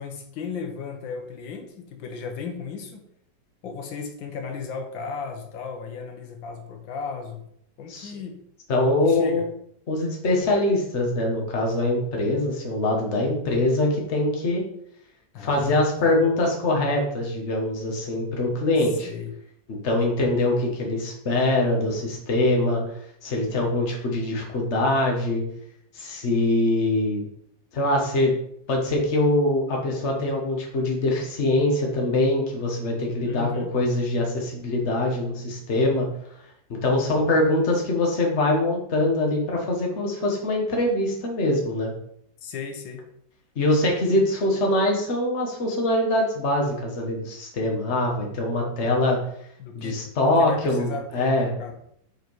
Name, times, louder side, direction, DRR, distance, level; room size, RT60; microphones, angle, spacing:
voice 1, 0.0-3.1 3.6-7.5 7.8-8.4 9.0-9.5 15.3-16.2 18.9-19.4 33.2-33.7 42.4-43.0 49.6-51.7, left 5 dB, 90° left, 5 dB, 1.6 m, -35 dB
voice 2, 8.7-9.4 9.9-14.6 15.4-19.1 19.8-22.8 23.2-25.4 25.9-27.2 27.7-28.4 28.7-36.1 36.8-41.9 43.5-49.2 49.7-51.7, left 2 dB, 40° left, 0 dB, 1.5 m, -23 dB
5.2 x 4.9 x 4.6 m, 0.71 s
omnidirectional pair, 2.0 m